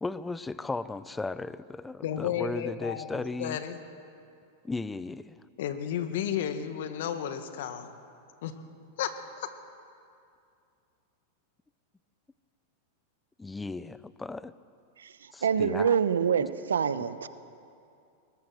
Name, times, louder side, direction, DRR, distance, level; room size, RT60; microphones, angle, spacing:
voice 1, 0.0-3.6 4.6-5.4 13.4-14.5 15.3-16.0, left 3 dB, 10° left, 16 dB, 0.6 m, -35 dB
voice 2, 2.0-3.8 5.6-7.9 8.4-8.5 9.0-9.1 9.4-9.5, left 9 dB, 70° left, 9 dB, 1.7 m, -32 dB
voice 3, 15.0-17.3, right 7 dB, 85° right, 14 dB, 0.9 m, -26 dB
21.0 x 20.5 x 6.3 m, 2.5 s
hypercardioid pair, 105°, 0 cm